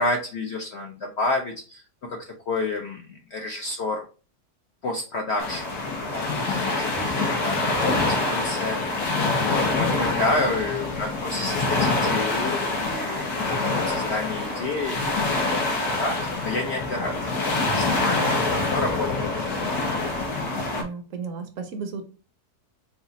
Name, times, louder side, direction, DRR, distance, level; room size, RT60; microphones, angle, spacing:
voice 1, 0.0-4.1 4.8-9.0 9.4-15.0 15.3-19.1, left 2 dB, 65° left, 2 dB, 0.6 m, -30 dB
sound 1, 5.4-20.8, left 3 dB, 85° left, 1.5 m, -25 dB
voice 2, 20.8-22.0, right 5 dB, 65° right, 6 dB, 0.9 m, -34 dB
4.0 x 2.4 x 3.9 m, 0.36 s
omnidirectional pair, 1.6 m